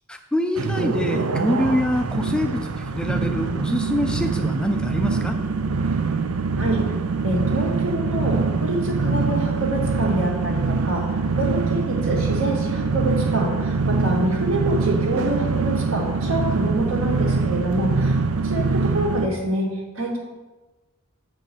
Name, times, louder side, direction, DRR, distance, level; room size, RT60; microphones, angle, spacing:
voice 1, 0.1-5.4, left 1 dB, 5° left, 5 dB, 0.3 m, -25 dB
sound 1, 0.6-19.3, right 4 dB, 90° right, 0.6 m, -24 dB
voice 2, 7.2-18.7 18.9-19.7 19.9-20.2, right 1 dB, 70° right, -2 dB, 2.2 m, -26 dB
7.7 x 5.4 x 6.1 m, 1.2 s
head